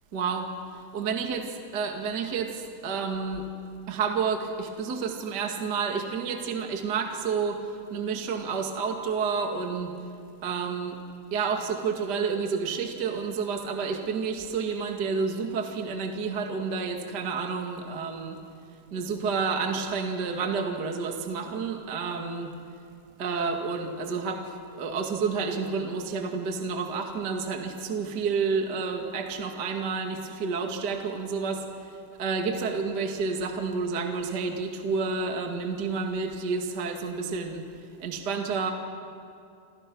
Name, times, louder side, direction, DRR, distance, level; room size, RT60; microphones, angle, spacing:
voice 1, 0.1-0.5 0.7-1.5 1.7-3.4 3.9-9.9 10.4-11.0 11.3-18.4 18.9-22.5 23.2-31.6 32.2-37.6 38.0-38.7, right 5 dB, 40° right, 3 dB, 1.4 m, -30 dB
28.0 x 27.5 x 6.1 m, 2.4 s
omnidirectional pair, 5.0 m